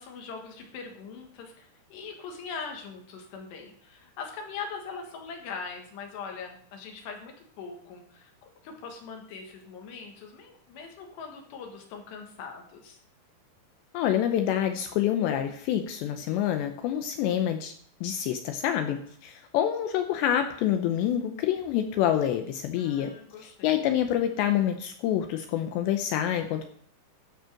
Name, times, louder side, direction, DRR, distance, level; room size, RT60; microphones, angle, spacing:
voice 1, 0.0-8.3 8.6-13.0 22.8-23.8, left 5 dB, 65° left, 3 dB, 3.4 m, -41 dB
voice 2, 13.9-17.7 18.0-23.1 23.4-26.7, left 10 dB, 85° left, 7 dB, 2.5 m, -27 dB
12.5 x 5.4 x 6.4 m, 0.62 s
omnidirectional pair, 5.8 m